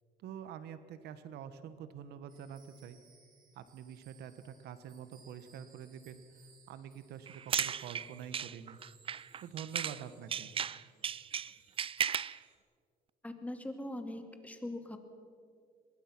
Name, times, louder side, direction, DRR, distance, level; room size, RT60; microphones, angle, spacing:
voice 1, 0.2-3.0 3.5-6.2 6.7-8.8 9.4-10.5, right 8 dB, 75° right, 12 dB, 1.3 m, -46 dB
sound 1, 2.3-12.6, right 5 dB, 55° right, 6.0 m, -65 dB
sound 2, 7.3-10.0 10.3-12.4, right 8 dB, 35° right, 0.5 m, -36 dB
voice 2, 13.2-15.0, left 1 dB, 10° left, 6 dB, 2.5 m, -41 dB
24.5 x 21.5 x 6.0 m, 2.2 s
cardioid pair, 110°, 17 cm